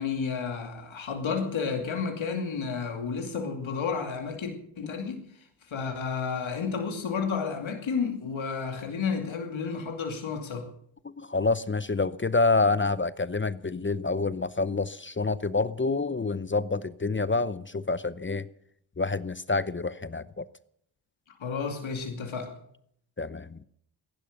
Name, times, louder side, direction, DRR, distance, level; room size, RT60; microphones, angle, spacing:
voice 1, 0.0-5.2 5.7-10.7 21.4-22.6, left 5 dB, 70° left, 2.7 m, -31 dB
voice 2, 11.0-18.5 19.0-20.5 23.2-23.6, left 3 dB, 25° left, 0.7 m, -27 dB
15.5 x 11.0 x 6.6 m
cardioid pair, 45°, 50 cm